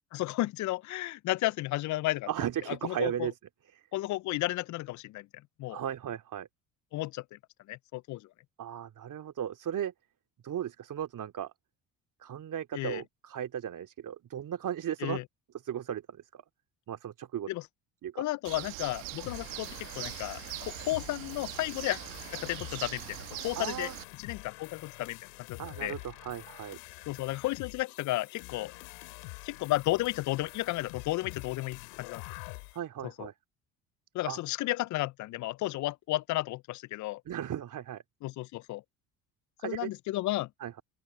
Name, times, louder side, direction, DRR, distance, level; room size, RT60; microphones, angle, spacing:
voice 1, 0.1-2.3 2.7-3.3 3.9-5.3 5.6-5.8 6.9-7.2 7.7-8.2 12.7-13.0 15.0-15.2 17.5-17.6 18.2-22.0 22.3-23.2 23.4-23.9 24.2-25.2 25.5-25.9 27.1-28.7 29.4-32.2 33.0-33.3 34.1-37.2 38.2-38.8 39.6-40.5, left 17 dB, 50° left, 0.4 m, -33 dB
voice 2, 2.3-3.3 5.7-6.5 8.6-9.9 10.4-11.5 12.2-15.2 15.6-16.0 16.3-16.4 16.9-17.5 18.0-18.2 23.6-24.0 25.6-26.8 32.7-33.3 34.3-34.4 37.3-38.0 39.6-39.9 40.6-40.8, right 10 dB, 50° right, 2.5 m, -36 dB
Bird, 18.4-24.0, right 24 dB, 80° right, 1.2 m, -42 dB
sound 1, 19.2-32.8, left 34 dB, 80° left, 6.2 m, -47 dB
open air
hypercardioid pair, 70°, 40 cm